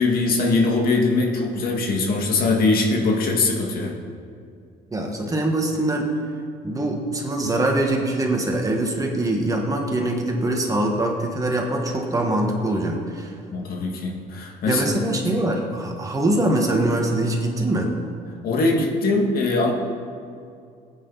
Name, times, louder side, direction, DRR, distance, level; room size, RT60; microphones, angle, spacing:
voice 1, 0.0-3.9 13.5-14.8 18.4-19.7, left 3 dB, 60° left, 0 dB, 2.2 m, -21 dB
voice 2, 4.9-6.1 6.6-13.3 14.7-17.9, right 1 dB, 20° right, 1 dB, 1.9 m, -23 dB
17.5 x 9.4 x 4.2 m, 2.4 s
cardioid pair, 110°, 17 cm